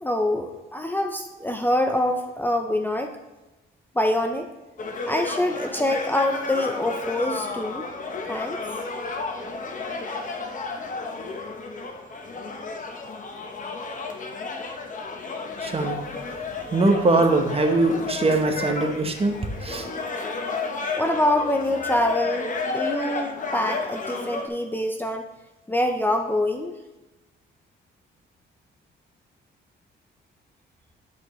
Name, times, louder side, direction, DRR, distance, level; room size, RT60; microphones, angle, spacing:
voice 1, 0.0-3.2 3.9-4.5 5.1-7.9 8.3-8.6 20.9-25.3 25.7-26.7, left 1 dB, 10° left, 4 dB, 0.6 m, -25 dB
sound 1, 4.8-24.5, left 3 dB, 40° left, 1.0 m, -32 dB
voice 2, 15.6-16.4 16.7-19.9, right 2 dB, 30° right, 4 dB, 1.0 m, -22 dB
11.0 x 4.4 x 3.1 m, 1.0 s
cardioid pair, 90°, 20 cm